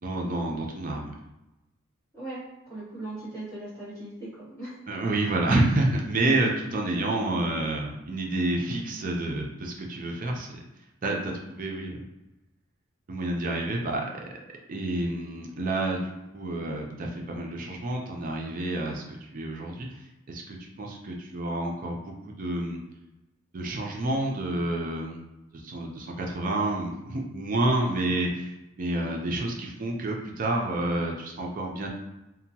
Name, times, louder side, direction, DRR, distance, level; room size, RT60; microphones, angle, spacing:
voice 1, 0.0-1.1 4.9-10.5 11.0-12.0 13.1-14.1 14.7-19.0 19.3-19.9 20.3-22.8 23.5-25.2 25.5-31.9, right 2 dB, 40° right, 0 dB, 0.4 m, -29 dB
voice 2, 2.7-4.7, right 1 dB, 15° left, -16 dB, 1.2 m, -38 dB
2.8 x 2.2 x 2.7 m, 0.97 s
head